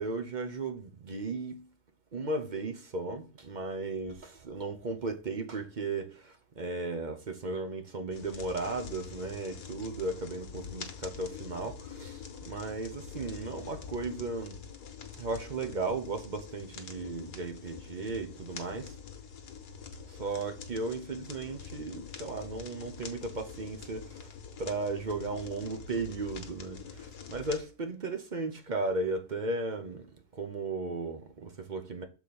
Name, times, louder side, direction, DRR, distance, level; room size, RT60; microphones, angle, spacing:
voice 1, 0.0-1.6 2.1-14.6 15.2-19.0 20.1-30.1 30.3-32.1, right 3 dB, 45° right, 0.6 m, -36 dB
sound 1, 8.1-27.6, left 7 dB, 85° left, 1.6 m, -45 dB
7.1 x 4.0 x 4.1 m
omnidirectional pair, 1.7 m